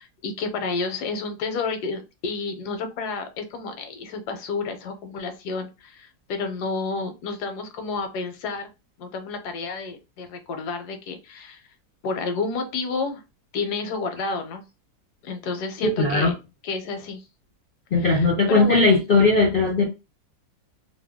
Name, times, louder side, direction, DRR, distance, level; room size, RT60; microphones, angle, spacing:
voice 1, 0.0-8.7 9.0-11.6 12.0-13.2 13.5-14.6 15.2-16.3 16.6-17.2 18.0-18.9, left 4 dB, 80° left, 1.2 m, -30 dB
voice 2, 15.8-16.3 17.9-19.8, left 3 dB, 55° left, 0.6 m, -18 dB
2.9 x 2.2 x 3.4 m
omnidirectional pair, 1.8 m